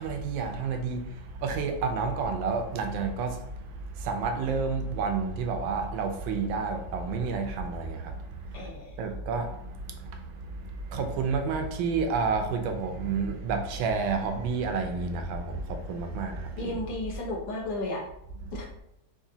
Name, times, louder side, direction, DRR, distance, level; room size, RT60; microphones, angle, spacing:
voice 1, 0.0-8.7 9.0-16.7 18.4-18.5, right 4 dB, 80° right, 1.3 m, -30 dB
voice 2, 8.5-8.9 16.6-18.0 18.5-18.7, left 1 dB, 70° left, 1.5 m, -33 dB
4.9 x 2.5 x 2.7 m
omnidirectional pair, 2.1 m